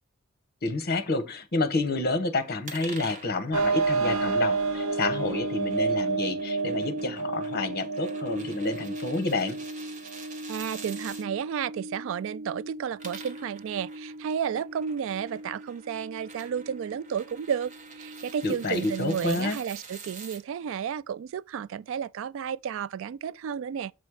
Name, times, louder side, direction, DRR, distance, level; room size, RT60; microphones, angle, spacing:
voice 1, 0.6-9.6 18.4-19.6, left 3 dB, 50° left, 1.1 m, -29 dB
sound 1, 2.6-11.2 12.8-20.4, right 4 dB, 40° right, 1.5 m, -47 dB
sound 2, 3.5-19.0, right 3 dB, 90° right, 0.8 m, -32 dB
voice 2, 10.5-23.9, right 8 dB, 65° right, 0.3 m, -32 dB
7.7 x 4.2 x 4.8 m
head